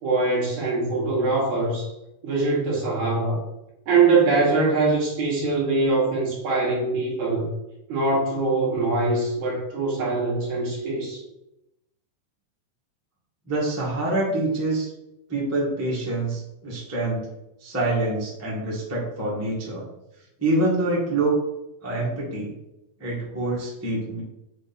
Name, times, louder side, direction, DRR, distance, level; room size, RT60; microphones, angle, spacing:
voice 1, 0.0-1.9 2.2-3.4 3.9-7.5 7.9-11.2, right 3 dB, 60° right, -4 dB, 2.7 m, -23 dB
voice 2, 13.5-14.9 15.3-17.3 17.6-19.8 20.4-21.4 21.8-22.5 23.0-24.2, right 2 dB, 10° right, -6 dB, 0.7 m, -26 dB
7.8 x 3.1 x 4.3 m, 0.90 s
omnidirectional pair, 4.1 m